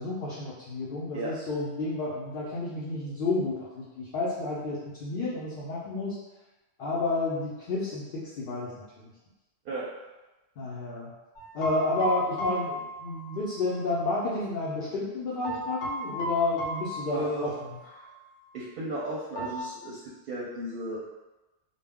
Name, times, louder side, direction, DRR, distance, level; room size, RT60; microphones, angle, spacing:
voice 1, 0.0-6.2 6.8-8.7 9.0-9.1 10.6-11.1 11.5-17.5, left 2 dB, 60° left, -7 dB, 0.7 m, -31 dB
sound 1, 11.4-14.0 15.4-17.7 18.0-18.2 19.4-19.6, left 1 dB, 85° left, 0.9 m, -35 dB
voice 2, 17.1-17.5 18.0-18.1 18.5-21.0, right 1 dB, 60° right, -6 dB, 0.7 m, -34 dB
2.2 x 2.0 x 3.4 m, 1.1 s
omnidirectional pair, 1.2 m